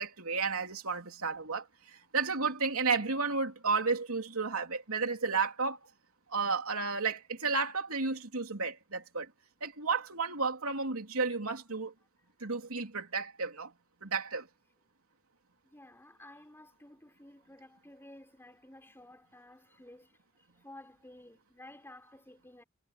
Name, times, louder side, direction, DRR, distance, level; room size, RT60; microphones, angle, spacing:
voice 1, 0.0-5.8 6.3-9.3 9.6-11.9 12.4-13.7 14.0-14.5, right 4 dB, 75° right, 3.3 m, -32 dB
voice 2, 15.6-20.2 20.5-22.6, left 1 dB, 10° left, 4.7 m, -53 dB
head